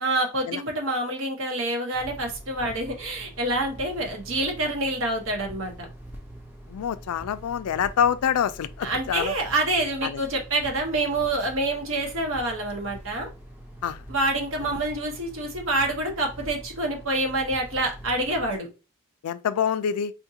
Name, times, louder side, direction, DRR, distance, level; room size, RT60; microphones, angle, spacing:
voice 1, 0.0-5.9 8.8-13.3 14.1-18.7, right 2 dB, 60° right, 1.0 m, -27 dB
sound 1, 1.9-18.6, right 1 dB, 10° right, 0.6 m, -44 dB
voice 2, 6.7-9.3 10.0-10.2 13.8-14.0 19.2-20.1, left 8 dB, 85° left, 0.3 m, -26 dB
4.3 x 2.4 x 2.7 m
head